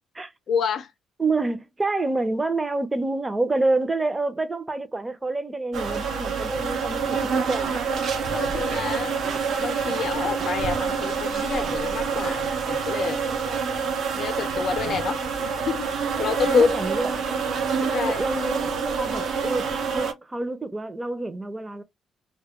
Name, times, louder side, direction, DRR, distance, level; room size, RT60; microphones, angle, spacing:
voice 1, 0.5-0.9 6.6-6.7 8.3-9.2 9.6-13.2 14.1-16.8 17.9-18.2, left 6 dB, 60° left, 0.5 m, -28 dB
voice 2, 1.2-7.8 16.2-17.3 17.8-21.8, right 2 dB, 20° right, 0.5 m, -28 dB
sound 1, 5.7-20.1, right 5 dB, 65° right, 0.5 m, -27 dB
2.2 x 2.1 x 2.8 m
cardioid pair, 90°, 0 cm